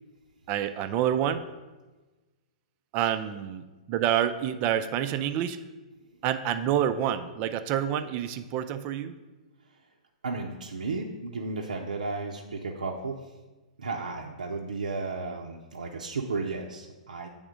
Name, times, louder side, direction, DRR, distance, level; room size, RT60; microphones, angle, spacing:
voice 1, 0.5-1.5 2.9-5.6 6.2-9.2, right 10 dB, 40° right, 9 dB, 0.4 m, -28 dB
voice 2, 10.2-13.2 13.8-17.3, right 3 dB, 90° right, -1 dB, 0.6 m, -33 dB
7.9 x 3.5 x 4.9 m, 1.2 s
hypercardioid pair, 120°, 4 cm